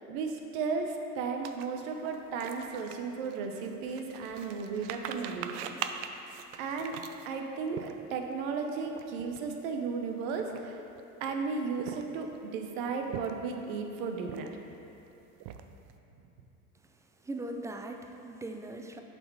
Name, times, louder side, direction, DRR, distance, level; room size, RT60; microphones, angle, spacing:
voice 1, 0.1-5.8 6.6-7.0 7.3-10.8 11.2-14.5, right 5 dB, 70° right, 4 dB, 0.9 m, -35 dB
sound 1, 1.4-8.3 8.9-9.0 9.3-9.5 10.2-11.0 11.6-12.4 12.9-13.6 14.2-14.8 15.1-15.9, right 9 dB, 55° right, 0.5 m, -42 dB
voice 2, 17.2-19.0, right 1 dB, 10° right, 4 dB, 0.3 m, -39 dB
7.6 x 4.3 x 4.7 m, 2.8 s
hypercardioid pair, 80°, 42 cm